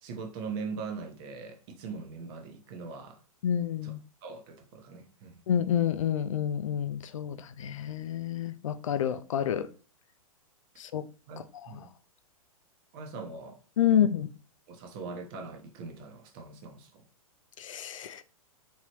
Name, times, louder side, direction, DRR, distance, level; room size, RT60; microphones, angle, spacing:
voice 1, 0.0-3.2 3.8-5.4 11.3-11.9 12.9-13.6 13.9-14.0 14.7-17.0, right 4 dB, 40° right, 1.0 m, -41 dB
voice 2, 3.4-4.0 5.5-9.7 10.8-11.0 13.8-14.3 17.6-18.2, left 9 dB, 60° left, 0.5 m, -28 dB
3.9 x 3.1 x 3.0 m
figure-of-eight pair, 110°, 18 cm